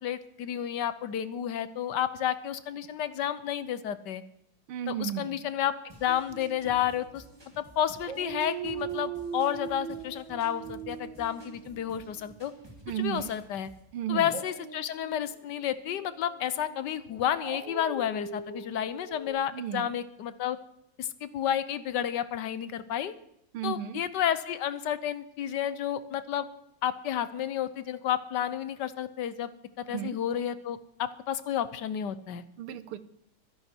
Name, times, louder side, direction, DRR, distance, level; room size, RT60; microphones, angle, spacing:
voice 1, 0.0-4.2 4.9-5.7 6.0-7.2 7.6-12.5 13.0-13.7 14.1-20.6 21.0-23.1 23.6-26.5 26.8-29.5 29.8-32.4, left 10 dB, 65° left, 14 dB, 1.3 m, -31 dB
voice 2, 4.7-5.4 12.9-13.3 13.9-14.4 19.5-19.9 23.5-24.0 29.9-30.2 32.6-33.0, right 11 dB, 85° right, 14 dB, 1.7 m, -34 dB
sound 1, 5.9-13.9, right 1 dB, 10° right, 2.3 m, -53 dB
Dog, 6.1-7.6 8.0-13.1 14.1-19.3, right 6 dB, 55° right, 2.8 m, -41 dB
23.0 x 10.5 x 4.5 m, 0.75 s
omnidirectional pair, 2.4 m